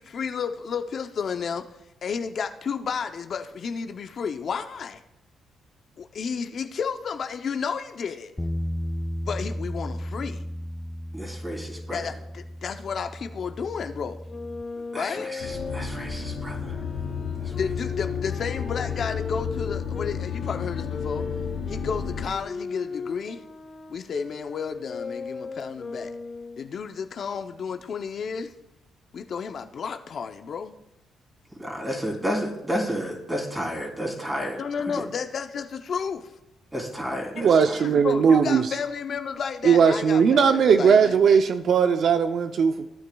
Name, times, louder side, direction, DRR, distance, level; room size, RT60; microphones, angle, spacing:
voice 1, 0.0-1.7 2.0-5.0 6.0-8.3 9.2-10.4 11.9-14.2 14.9-15.3 17.6-21.3 21.7-23.4 23.9-26.2 26.6-28.5 29.1-30.8 34.6-36.3 37.4-41.2, left 6 dB, 55° left, 7 dB, 0.6 m, -32 dB
Bass guitar, 8.4-14.6, equal, 10° left, 0.6 m, -34 dB
voice 2, 11.1-12.0 14.9-16.8 17.4-17.5 31.6-34.6 36.7-37.8, equal, 10° right, -1 dB, 3.3 m, -31 dB
Wind instrument woodwind instrument, 14.2-20.1 20.9-26.7, left 4 dB, 35° left, 2.1 m, -37 dB
sound 1, 15.4-22.3, left 6 dB, 75° left, 2.5 m, -32 dB
voice 3, 37.4-38.7 39.6-42.9, right 6 dB, 60° right, 8 dB, 0.5 m, -19 dB
16.5 x 9.1 x 2.3 m, 0.88 s
cardioid pair, 90°, 0 cm